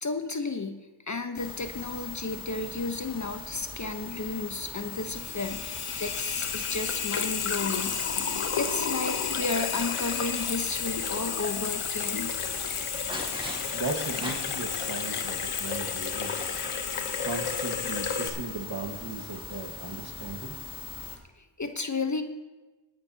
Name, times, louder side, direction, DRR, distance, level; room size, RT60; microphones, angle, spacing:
voice 1, 0.0-8.3 8.6-12.3 21.6-22.2, left 3 dB, 35° left, 7 dB, 1.0 m, -33 dB
sound 1, 1.3-21.2, left 3 dB, 10° right, 2.2 m, -41 dB
Water tap faucet / Sink (filling or washing), 4.7-18.3, left 6 dB, 85° left, 1.1 m, -32 dB
voice 2, 13.3-16.3 17.2-20.6, right 3 dB, 50° right, 4 dB, 1.7 m, -37 dB
18.5 x 10.0 x 2.8 m, 1.2 s
cardioid pair, 50°, 49 cm